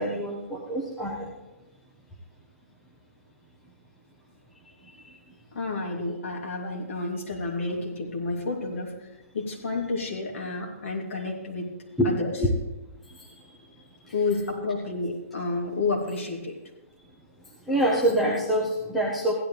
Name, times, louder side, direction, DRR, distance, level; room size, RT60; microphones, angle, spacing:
voice 1, 0.0-1.3 12.0-12.1 13.2-13.3 17.7-19.3, right 1 dB, ahead, -5 dB, 0.7 m, -25 dB
voice 2, 5.5-9.1 9.3-11.7 12.0-12.4 14.1-16.6, left 3 dB, 55° left, 0 dB, 2.9 m, -30 dB
16.0 x 11.5 x 3.3 m, 1.1 s
hypercardioid pair, 180°, 8 cm